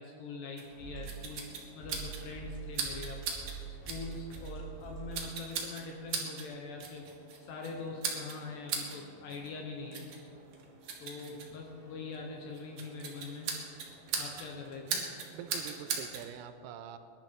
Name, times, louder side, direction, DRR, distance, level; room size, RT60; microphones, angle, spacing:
voice 1, 0.0-3.2 3.7-7.1 7.4-10.1 11.0-13.5 14.1-15.1, left 4 dB, 75° left, 1 dB, 2.7 m, -43 dB
sound 1, 0.6-16.3, right 5 dB, 60° right, 2.5 m, -41 dB
sound 2, 0.7-6.7 7.5-10.8 11.6-14.7 15.5-15.7, right 6 dB, 50° left, 4.5 m, -49 dB
voice 2, 15.3-17.0, right 9 dB, 85° right, 9 dB, 3.4 m, -45 dB
21.0 x 11.0 x 4.6 m, 2.7 s
omnidirectional pair, 6.0 m